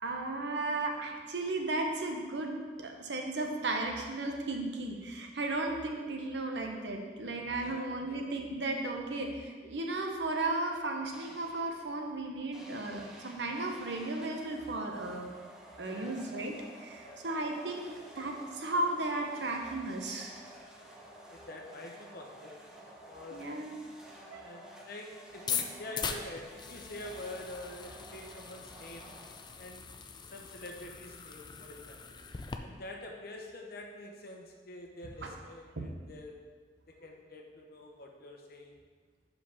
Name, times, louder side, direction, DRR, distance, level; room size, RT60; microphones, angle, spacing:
voice 1, 0.0-15.3 15.8-20.4 23.3-23.7 24.3-24.5 35.2-35.3 35.8-35.9, right 2 dB, 80° right, 2 dB, 0.9 m, -35 dB
voice 2, 7.6-8.2 15.9-16.2 17.0-17.3 21.3-22.6 23.1-23.7 24.4-29.1 29.6-29.9 30.3-32.2 32.6-36.4 37.0-38.7, left 1 dB, 60° left, 1 dB, 0.9 m, -46 dB
sound 1, 11.1-11.8 12.5-29.9, right 1 dB, 5° right, 0.8 m, -52 dB
sound 2, 25.3-32.6, left 6 dB, 25° left, 0.4 m, -41 dB
5.0 x 5.0 x 5.7 m, 1.5 s
head